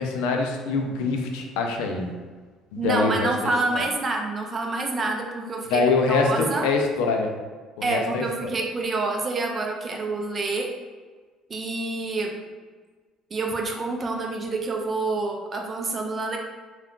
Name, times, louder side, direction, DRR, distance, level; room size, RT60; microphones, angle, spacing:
voice 1, 0.0-2.1 2.7-3.3 3.7-3.8 5.7-7.3 7.8-8.5, left 4 dB, 90° left, 2 dB, 0.4 m, -24 dB
voice 2, 2.8-5.8 6.1-6.7 7.8-10.7 11.5-12.4 13.3-16.4, right 3 dB, 30° right, 2 dB, 0.5 m, -27 dB
2.3 x 2.3 x 3.6 m, 1.4 s
cardioid pair, 110°, 0 cm